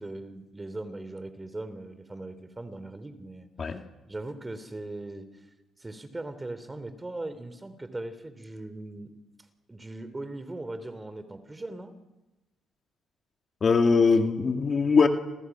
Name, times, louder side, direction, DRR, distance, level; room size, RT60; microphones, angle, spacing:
voice 1, 0.0-5.3 5.8-9.1 9.7-12.0, right 2 dB, 20° right, 12 dB, 3.4 m, -39 dB
voice 2, 13.6-15.1, left 4 dB, 45° left, 5 dB, 2.3 m, -21 dB
28.5 x 27.5 x 6.2 m, 1.0 s
supercardioid pair, 70°, 0 cm